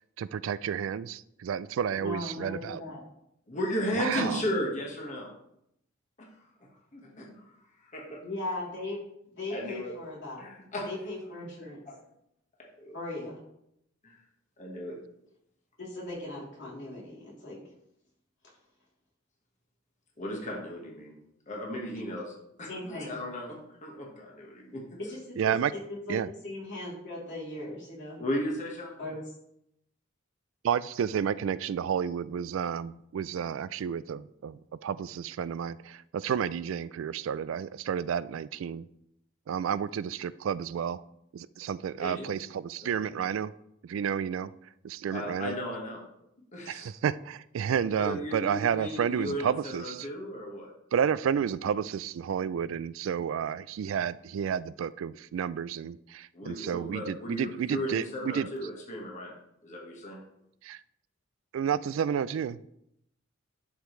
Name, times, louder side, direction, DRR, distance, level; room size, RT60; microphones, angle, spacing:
voice 1, 0.2-2.8 3.9-4.4 25.4-25.7 26.1-26.3 30.6-38.9 39.5-41.0 41.3-43.5 43.8-44.5 44.8-45.6 46.7-50.1 50.9-58.5 60.6-60.8 61.5-62.7, right 8 dB, 75° right, 17 dB, 0.3 m, -31 dB
voice 2, 1.9-3.0 4.1-4.6 8.2-9.0 9.4-10.5 10.8-11.8 12.9-13.4 15.8-17.6 22.7-23.1 25.1-26.2 26.4-28.2 29.0-29.2, left 2 dB, 65° left, -6 dB, 3.2 m, -38 dB
voice 3, 3.5-5.3 6.2-6.3 6.9-7.6 7.8-8.2 9.5-9.9 10.4-10.9 11.9-12.0 12.8-13.0 14.0-14.1 14.6-15.0 20.2-21.2 21.5-25.0 28.2-28.9 42.0-42.4 43.0-43.1 45.1-46.0 46.5-46.9 47.9-50.7 56.3-59.3 59.6-60.2, equal, 40° left, -1 dB, 1.5 m, -35 dB
11.5 x 5.0 x 3.2 m, 0.78 s
head